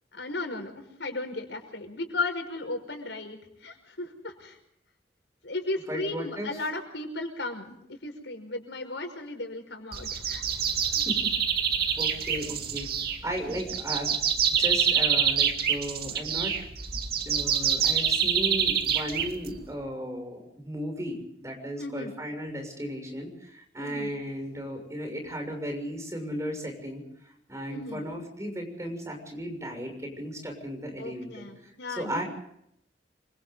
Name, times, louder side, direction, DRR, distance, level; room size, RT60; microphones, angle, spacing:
voice 1, 0.1-0.7 1.0-4.6 5.4-10.4 10.9-11.0 12.3-12.5 13.4-13.6 21.8-22.1 23.8-24.1 27.7-28.0 31.0-32.2, left 2 dB, 85° left, 5 dB, 5.4 m, -35 dB
voice 2, 5.9-6.5 11.0-11.3 12.0-12.9 13.2-14.2 14.6-16.5 17.2-27.0 27.5-31.5 32.0-32.2, equal, 20° right, 3 dB, 6.8 m, -35 dB
sound 1, 9.9-19.7, right 7 dB, 60° right, 2.3 m, -26 dB
27.5 x 25.0 x 3.9 m, 0.73 s
head